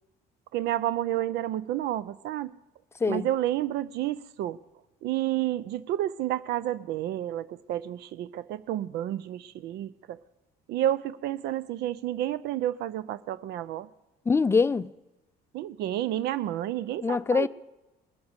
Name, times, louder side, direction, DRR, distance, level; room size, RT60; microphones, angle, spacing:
voice 1, 0.5-2.5 3.1-4.6 5.0-10.2 10.7-13.9 15.5-17.5, right 13 dB, 75° right, 0.5 m, -30 dB
voice 2, 14.3-14.9 17.0-17.5, left 4 dB, 15° left, 0.4 m, -23 dB
20.5 x 6.8 x 8.0 m
cardioid pair, 110°, 17 cm